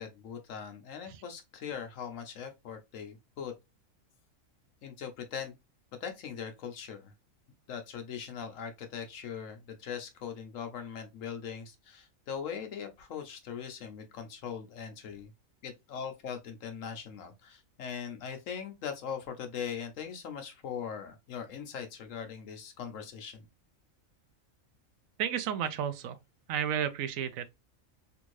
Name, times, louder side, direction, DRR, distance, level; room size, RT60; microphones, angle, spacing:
voice 1, 0.0-3.5 4.8-5.5 6.0-7.1 7.7-15.3 15.6-23.5, left 7 dB, 70° left, 1.1 m, -40 dB
voice 2, 25.2-26.2 26.5-27.5, right 9 dB, 75° right, 1.0 m, -32 dB
3.5 x 2.6 x 3.0 m
omnidirectional pair, 1.4 m